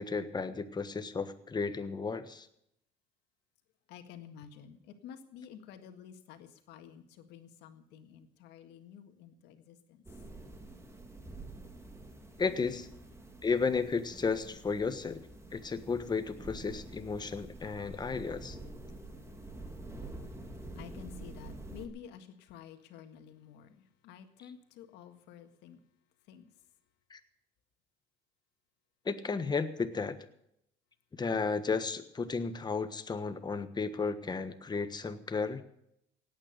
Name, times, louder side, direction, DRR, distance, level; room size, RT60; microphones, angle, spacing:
voice 1, 0.0-2.5 12.4-12.9 13.4-15.2 15.5-18.6 27.1-27.2 29.0-30.2 31.2-35.6, left 4 dB, 25° left, 10 dB, 1.3 m, -33 dB
voice 2, 3.9-10.0 19.1-19.4 20.1-20.3 20.6-25.8 26.3-26.5, left 8 dB, 90° left, 7 dB, 1.8 m, -51 dB
sound 1, 10.1-21.9, right 2 dB, 15° right, 2.2 m, -47 dB
17.5 x 9.1 x 6.7 m, 0.76 s
cardioid pair, 110°, 17 cm